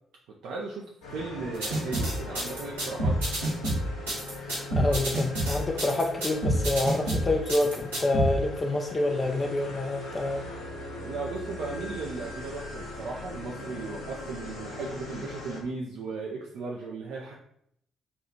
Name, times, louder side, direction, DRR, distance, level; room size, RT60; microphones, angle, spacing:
voice 1, 0.4-3.2 10.9-17.3, right 3 dB, 65° right, -2 dB, 0.5 m, -36 dB
sound 1, 1.0-15.6, left 2 dB, 70° left, 1.3 m, -40 dB
sound 2, 1.6-8.3, right 1 dB, 85° right, 1.4 m, -28 dB
voice 2, 4.5-10.4, left 2 dB, 30° left, 2 dB, 0.5 m, -27 dB
4.4 x 2.4 x 4.2 m, 0.71 s
figure-of-eight pair, 45°, 0 cm